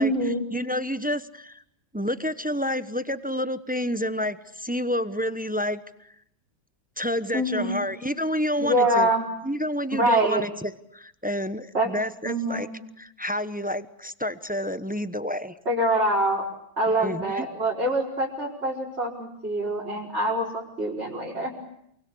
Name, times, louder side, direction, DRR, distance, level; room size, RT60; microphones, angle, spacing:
voice 1, 0.0-0.4 7.3-8.1 8.6-9.3 9.9-10.4 11.7-11.9 12.2-12.8 15.7-16.4 16.8-21.5, right 1 dB, 35° right, -5 dB, 5.7 m, -25 dB
voice 2, 0.5-1.6 1.9-6.1 7.0-9.1 9.4-12.7 13.0-15.5 17.0-17.5, equal, 10° right, 13 dB, 0.6 m, -29 dB
28.5 x 24.5 x 8.5 m, 0.74 s
omnidirectional pair, 2.0 m